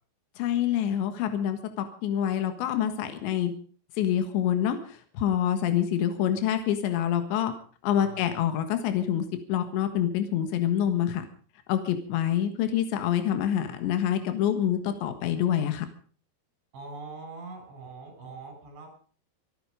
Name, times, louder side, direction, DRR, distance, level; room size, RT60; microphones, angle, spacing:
voice 1, 0.4-3.5 4.0-7.5 7.8-11.3 11.7-15.9, left 10 dB, 80° left, 8 dB, 3.8 m, -26 dB
voice 2, 16.7-18.9, right 3 dB, 80° right, 4 dB, 7.8 m, -42 dB
26.5 x 9.1 x 5.0 m, 0.42 s
omnidirectional pair, 5.1 m